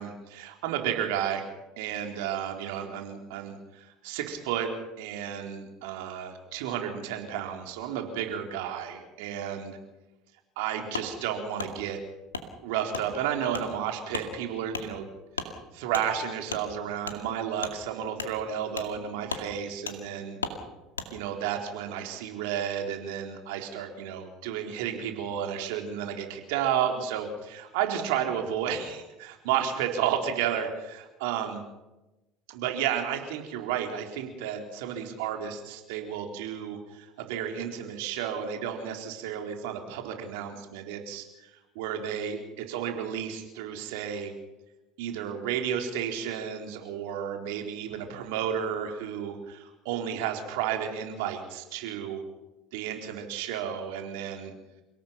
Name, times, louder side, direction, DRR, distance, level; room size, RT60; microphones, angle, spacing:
voice 1, 0.0-1.4 1.8-4.7 5.0-9.8 10.6-12.0 12.6-15.1 15.7-20.4 21.1-31.6 32.5-41.5 41.8-44.3 45.0-52.2 52.7-54.5, right 9 dB, 65° right, 4 dB, 3.9 m, -32 dB
Wood, 10.9-11.1 11.6-11.7 12.3-12.5 12.9-13.1 13.5-13.7 14.1-14.3 14.7-14.9 15.3-15.5 15.9-16.1 16.5-16.6 17.0-17.2 17.6-17.7 18.2-18.3 18.8-18.9 19.3-19.5 19.9-20.0 20.4-20.6 20.9-21.1, left 4 dB, 85° left, 2.2 m, -35 dB
29.0 x 17.5 x 5.8 m, 1.0 s
hypercardioid pair, 70°, 0 cm